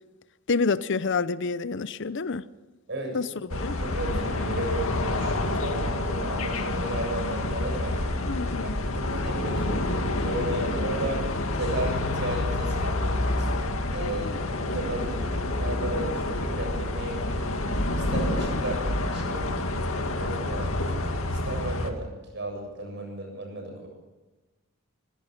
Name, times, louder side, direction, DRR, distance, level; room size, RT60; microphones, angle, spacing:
voice 1, 0.5-2.4 3.1-3.3 3.6-3.7 8.2-8.7 14.0-14.4, left 4 dB, 60° left, 0.7 m, -28 dB
voice 2, 2.9-3.2 3.8-8.0 8.4-9.9 10.2-11.3 11.5-13.5 13.9-15.1 15.6-17.5 17.9-18.8 19.1-23.9, right 2 dB, 55° right, 7.4 m, -34 dB
sound 1, 3.5-21.9, left 2 dB, 75° left, 2.1 m, -28 dB
25.5 x 16.5 x 6.7 m
head